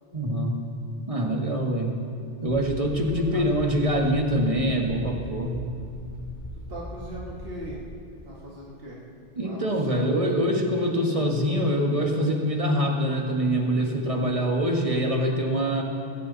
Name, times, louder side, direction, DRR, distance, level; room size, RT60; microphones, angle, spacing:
voice 1, 0.1-0.6 1.0-1.9 2.4-5.6 9.4-15.8, equal, 35° right, 1 dB, 1.8 m, -24 dB
sound 1, 2.5-7.8, left 1 dB, 50° left, 2.2 m, -40 dB
voice 2, 2.9-3.4 6.7-7.8 8.2-9.0 9.4-10.0, right 1 dB, 65° right, -5 dB, 2.3 m, -39 dB
19.5 x 16.5 x 4.1 m, 2.4 s
omnidirectional pair, 1.0 m